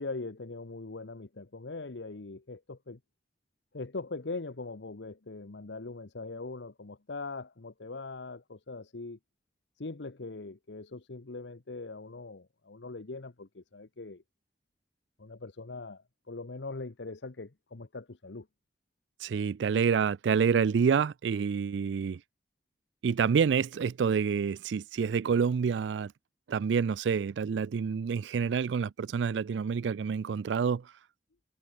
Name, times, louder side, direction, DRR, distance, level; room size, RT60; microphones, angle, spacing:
voice 1, 0.0-3.0 3.7-9.2 9.8-14.2 15.2-18.5, left 3 dB, 80° left, 1.0 m, -41 dB
voice 2, 19.2-22.2 23.0-26.1 26.5-30.9, right 6 dB, 85° right, 0.4 m, -28 dB
head